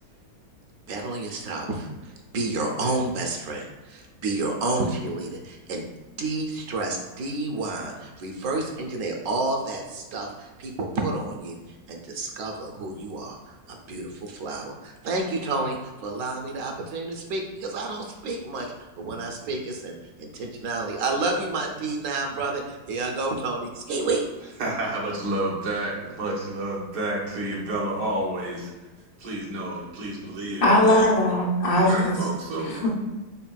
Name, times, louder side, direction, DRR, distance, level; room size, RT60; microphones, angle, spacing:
voice 1, 0.9-5.9 6.2-11.6 11.9-24.2, right 3 dB, 70° right, 1 dB, 1.0 m, -30 dB
voice 2, 24.6-28.7 29.2-30.6 31.8-32.9, right 1 dB, 85° right, -3 dB, 1.5 m, -30 dB
voice 3, 30.6-32.2 32.5-32.9, left 1 dB, 70° left, -4 dB, 1.4 m, -20 dB
4.2 x 3.6 x 2.3 m, 1.2 s
omnidirectional pair, 1.7 m